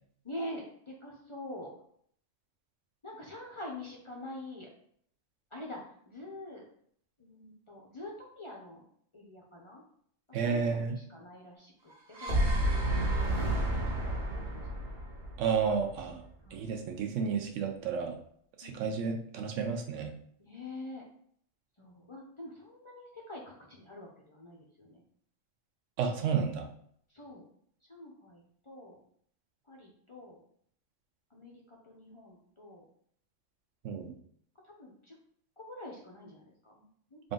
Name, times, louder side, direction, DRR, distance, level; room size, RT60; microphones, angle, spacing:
voice 1, 0.2-1.7 3.0-4.7 5.5-5.8 6.1-6.6 7.2-8.8 9.1-9.8 10.4-11.9 12.2-12.9 13.4-14.2 14.5-14.6 16.4-16.7 18.6-19.0 20.4-21.0 21.8-25.0 27.1-27.4 27.9-29.0 29.7-30.4 31.3-32.8 34.6-35.2 35.6-37.3, left 1 dB, 35° left, -2 dB, 0.5 m, -46 dB
voice 2, 10.3-11.0 15.4-16.2 16.5-18.1 18.6-20.1 26.0-26.7 33.8-34.1 37.2-37.3, right 6 dB, 75° right, 5 dB, 1.0 m, -31 dB
sound 1, 11.9-16.1, right 1 dB, 40° right, 0.9 m, -30 dB
3.8 x 2.4 x 3.7 m, 0.64 s
omnidirectional pair, 1.3 m